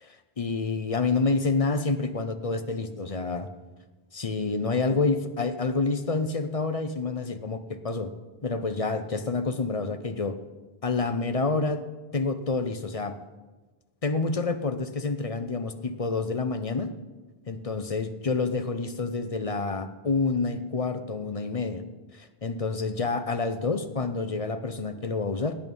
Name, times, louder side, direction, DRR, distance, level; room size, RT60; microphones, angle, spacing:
voice 1, 0.4-3.5 4.1-8.1 8.4-10.4 10.8-11.9 12.1-13.1 14.0-16.9 17.5-21.8 22.1-25.6, left 3 dB, 40° left, 9 dB, 0.8 m, -28 dB
17.0 x 9.3 x 5.4 m, 1.2 s
omnidirectional pair, 1.0 m